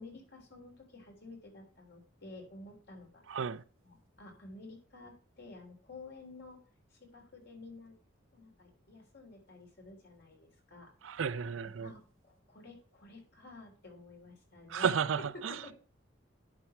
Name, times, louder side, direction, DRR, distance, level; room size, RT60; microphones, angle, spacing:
voice 1, 0.0-3.4 3.8-6.6 6.9-7.9 8.3-10.9 11.6-15.7, left 2 dB, 60° left, 3.5 m, -51 dB
voice 2, 3.3-3.6 11.0-11.9 14.7-15.6, right 6 dB, 80° right, 0.5 m, -33 dB
10.5 x 4.5 x 5.9 m
head